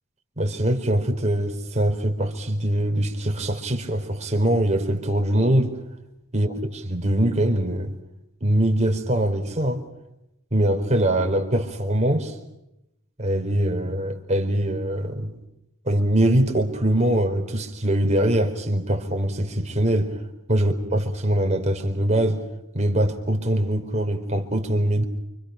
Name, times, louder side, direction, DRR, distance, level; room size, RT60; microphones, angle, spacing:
voice 1, 0.4-5.7 6.3-7.9 8.4-9.8 10.5-12.4 13.2-15.4 15.8-20.2 20.5-22.4 22.7-25.0, right 1 dB, 30° right, 4 dB, 4.3 m, -23 dB
29.5 x 26.5 x 5.9 m, 0.86 s
head